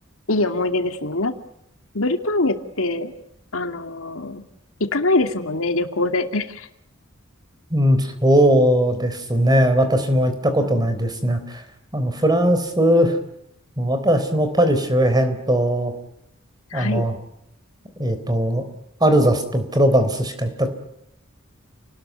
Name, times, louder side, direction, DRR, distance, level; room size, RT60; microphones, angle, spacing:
voice 1, 0.3-1.3 1.9-3.1 3.5-4.4 4.8-6.7 10.6-10.8 16.7-17.1, left 2 dB, 80° left, 6 dB, 2.5 m, -23 dB
voice 2, 7.7-11.6 11.9-13.2 13.8-15.9 16.7-17.2 18.0-18.6 19.0-20.7, equal, 20° right, 9 dB, 3.7 m, -19 dB
29.5 x 20.0 x 9.2 m, 0.80 s
head